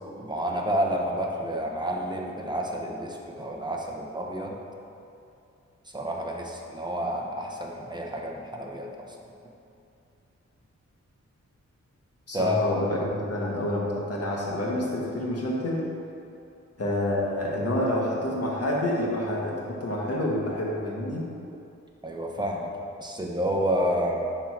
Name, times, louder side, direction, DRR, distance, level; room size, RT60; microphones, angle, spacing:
voice 1, 0.2-4.6 5.9-9.1 12.3-12.6 21.5-21.6 22.0-22.7 23.0-24.2, equal, 15° right, -1 dB, 1.0 m, -29 dB
voice 2, 12.3-15.8 16.8-21.3, left 1 dB, 55° left, -3 dB, 1.6 m, -28 dB
9.4 x 3.8 x 6.0 m, 2.6 s
wide cardioid pair, 105°, 29 cm